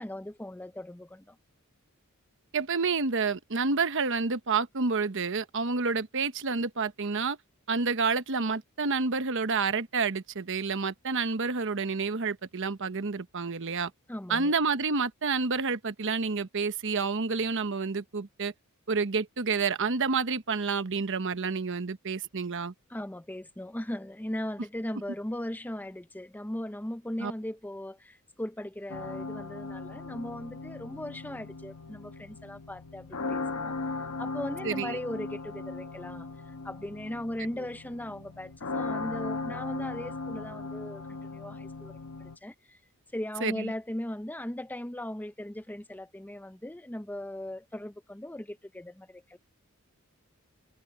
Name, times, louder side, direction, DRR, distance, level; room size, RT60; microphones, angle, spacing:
voice 1, 0.0-1.4 14.1-14.5 22.9-33.8 34.2-36.3 36.6-42.8 43.1-49.4, left 1 dB, 10° left, 0.6 m, -38 dB
voice 2, 2.5-7.4 7.7-13.9 14.3-18.5 18.9-22.7 27.2-27.3 34.6-35.0 43.4-43.7, right 4 dB, 60° right, 1.0 m, -29 dB
sound 1, 28.9-42.4, left 3 dB, 90° left, 1.2 m, -38 dB
head